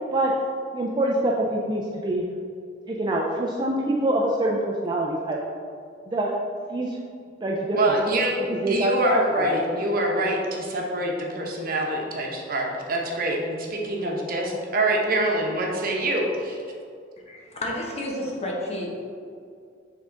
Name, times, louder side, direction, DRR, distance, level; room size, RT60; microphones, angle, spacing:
voice 1, 0.7-2.2 2.9-5.4 6.1-6.3 6.7-7.0 7.4-7.8 8.5-8.9 9.5-9.6, right 1 dB, 25° right, -2 dB, 0.4 m, -25 dB
voice 2, 7.8-8.4 8.7-16.6, right 1 dB, 50° right, 0 dB, 0.9 m, -25 dB
voice 3, 17.3-19.1, left 1 dB, 35° left, -2 dB, 1.1 m, -31 dB
7.2 x 3.7 x 3.8 m, 2.3 s
head